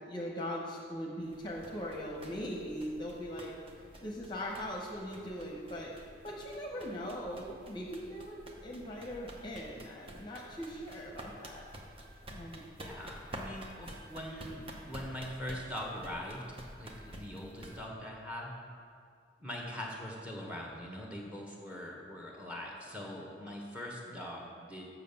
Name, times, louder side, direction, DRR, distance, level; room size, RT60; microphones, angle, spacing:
voice 1, 0.1-5.9 6.2-8.4 8.6-11.6 12.3-12.6, equal, 25° left, -1 dB, 0.9 m, -40 dB
sound 1, 1.2-17.9, right 1 dB, 30° right, 0.9 m, -50 dB
voice 2, 12.8-18.5 19.4-24.9, left 1 dB, 5° right, -1 dB, 1.3 m, -42 dB
7.5 x 5.9 x 6.9 m, 2.2 s
head